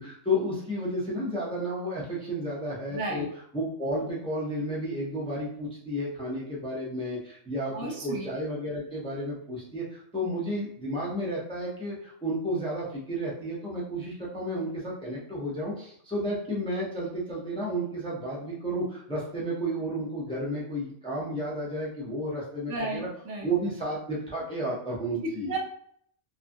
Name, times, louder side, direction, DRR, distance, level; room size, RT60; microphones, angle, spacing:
voice 1, 0.0-3.3 3.5-23.1 23.4-25.5, equal, 5° left, -6 dB, 0.6 m, -32 dB
voice 2, 2.9-3.3 7.7-8.3 22.7-23.5 25.2-25.6, right 2 dB, 85° right, -1 dB, 1.1 m, -33 dB
2.8 x 2.4 x 2.6 m, 0.64 s
omnidirectional pair, 1.3 m